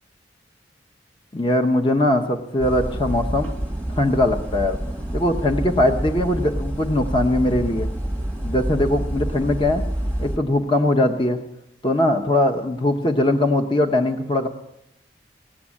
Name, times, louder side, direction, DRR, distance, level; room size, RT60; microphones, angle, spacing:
voice 1, 1.3-3.5 3.9-4.8 5.1-7.9 8.4-9.8 10.2-11.4 11.8-14.5, left 1 dB, 30° left, 4 dB, 0.9 m, -20 dB
sound 1, 2.6-10.4, right 1 dB, 10° left, 1.5 m, -28 dB
18.5 x 7.7 x 8.6 m, 0.86 s
head